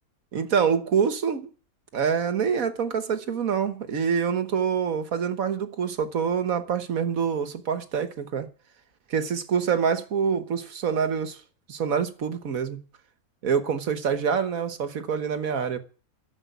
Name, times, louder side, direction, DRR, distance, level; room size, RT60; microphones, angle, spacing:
voice 1, 0.3-1.5 1.9-8.5 9.1-11.4 11.7-12.8 13.4-15.8, right 6 dB, 75° right, 1.7 m, -26 dB
12.0 x 7.5 x 9.3 m
omnidirectional pair, 1.5 m